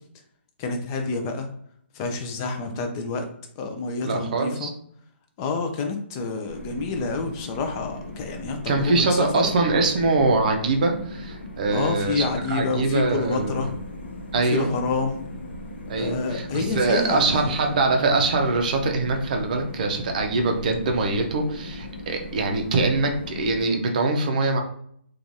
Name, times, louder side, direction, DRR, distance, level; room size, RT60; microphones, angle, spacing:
voice 1, 0.6-1.5 1.9-3.3 3.6-4.7 5.4-9.6 11.7-13.7 14.4-15.2 16.0-17.4, left 4 dB, 20° left, 5 dB, 0.3 m, -28 dB
voice 2, 4.0-4.7 8.7-13.7 14.3-14.7 15.9-24.6, right 3 dB, 40° right, 3 dB, 0.5 m, -23 dB
sound 1, 6.5-23.6, left 1 dB, 65° left, 0.7 m, -38 dB
3.0 x 2.3 x 2.6 m, 0.65 s
hypercardioid pair, 160°, 6 cm